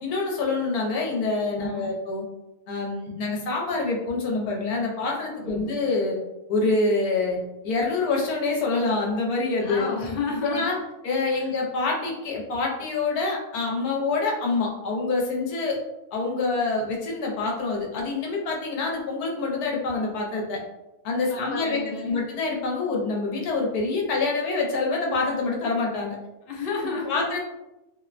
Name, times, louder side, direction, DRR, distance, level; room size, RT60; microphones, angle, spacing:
voice 1, 0.0-2.2 2.7-6.2 6.5-7.4 7.6-9.9 10.4-10.8 11.0-15.8 16.1-20.6 21.0-26.2 27.0-27.4, left 3 dB, 80° left, -1 dB, 1.2 m, -26 dB
voice 2, 1.6-1.9 5.4-5.7 9.6-10.8 11.3-11.5 21.3-22.2 26.5-27.3, left 4 dB, 60° left, -2 dB, 0.6 m, -32 dB
2.8 x 2.1 x 2.4 m, 0.96 s
omnidirectional pair, 1.6 m